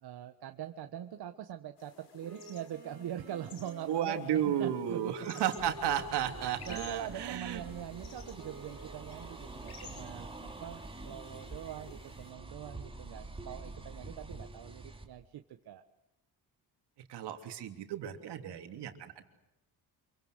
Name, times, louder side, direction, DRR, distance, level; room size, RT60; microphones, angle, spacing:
voice 1, 0.0-5.2 6.7-15.8, right 10 dB, 70° right, 6 dB, 1.4 m, -43 dB
sound 1, 1.8-12.3, left 6 dB, 75° left, 5.8 m, -55 dB
Wind instrument woodwind instrument, 2.2-10.0, right 5 dB, 35° right, 5.5 m, -52 dB
voice 2, 3.9-7.6 17.1-19.2, right 9 dB, 85° right, 6 dB, 3.2 m, -33 dB
sound 2, 5.6-15.0, right 2 dB, 15° right, 3.1 m, -47 dB
27.5 x 23.5 x 8.1 m, 0.92 s
cardioid pair, 120°, 40 cm